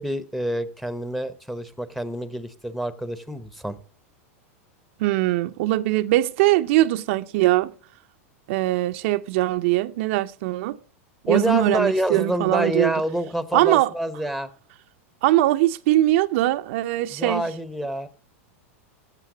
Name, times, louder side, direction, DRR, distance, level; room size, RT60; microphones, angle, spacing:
voice 1, 0.0-3.8 11.3-14.5 17.1-18.1, right 1 dB, ahead, 0.9 m, -27 dB
voice 2, 5.0-7.7 8.5-10.8 11.2-12.9 13.5-13.9 15.2-17.4, right 16 dB, 60° right, 0.6 m, -21 dB
15.0 x 7.5 x 5.0 m
hypercardioid pair, 120°, 7 cm